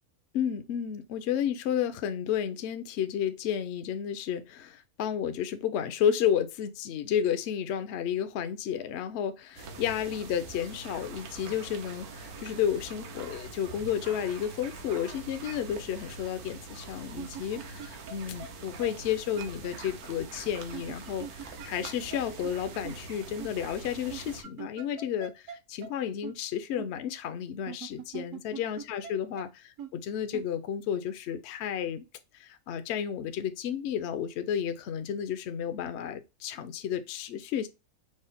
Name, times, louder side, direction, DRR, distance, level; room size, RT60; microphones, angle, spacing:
voice 1, 0.3-29.6 29.9-32.0 32.3-37.7, left 9 dB, 65° left, 0.7 m, -32 dB
sound 1, 9.6-24.4, right 3 dB, 90° right, 1.3 m, -44 dB
sound 2, 14.9-15.0 15.4-15.5 17.2-18.1 18.4-18.5 18.8-18.9 19.4-19.5 20.7-22.2 22.4-22.5 22.8-23.0 23.4-23.5 24.1-25.6 25.8-25.9 26.2-26.3 26.8-26.9 27.7-29.1 29.4-29.5 29.8-29.9 30.3-30.4, right 8 dB, 70° right, 1.0 m, -41 dB
4.9 x 2.1 x 4.1 m
omnidirectional pair, 1.5 m